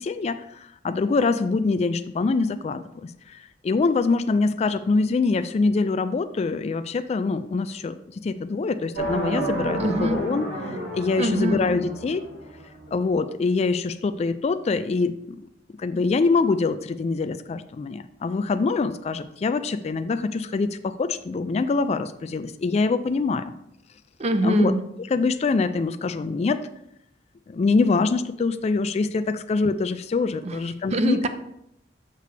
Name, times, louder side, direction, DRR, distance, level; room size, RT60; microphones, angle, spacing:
voice 1, 0.0-8.0 8.2-10.5 10.9-12.2 12.9-15.4 15.8-23.5 24.4-24.7 25.1-26.6 27.5-31.2, left 4 dB, 35° left, 11 dB, 0.3 m, -24 dB
sound 1, 9.0-13.0, right 1 dB, 70° right, 2.0 m, -31 dB
voice 2, 9.8-10.2 11.2-11.7 24.2-24.8 30.4-30.6 30.9-31.3, right 1 dB, 40° right, 9 dB, 0.5 m, -24 dB
6.7 x 6.6 x 3.3 m, 0.77 s
head